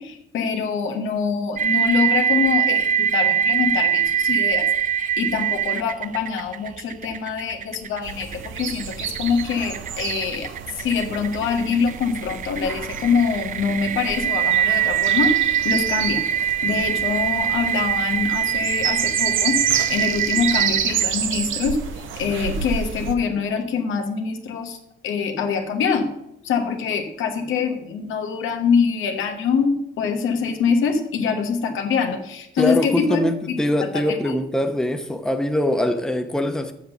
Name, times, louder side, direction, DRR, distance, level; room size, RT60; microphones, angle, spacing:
voice 1, 0.0-4.7 5.0-16.2 16.6-19.6 19.9-21.8 22.2-24.8 25.0-26.1 26.4-33.6 33.9-34.3, left 5 dB, 85° left, 1.3 m, -24 dB
sound 1, 1.6-21.0, right 9 dB, 40° right, 0.4 m, -23 dB
sound 2, 8.0-23.2, right 8 dB, 75° right, 0.8 m, -29 dB
voice 2, 32.6-36.7, left 1 dB, 5° left, 0.9 m, -23 dB
7.3 x 6.3 x 6.8 m
cardioid pair, 90°, 20 cm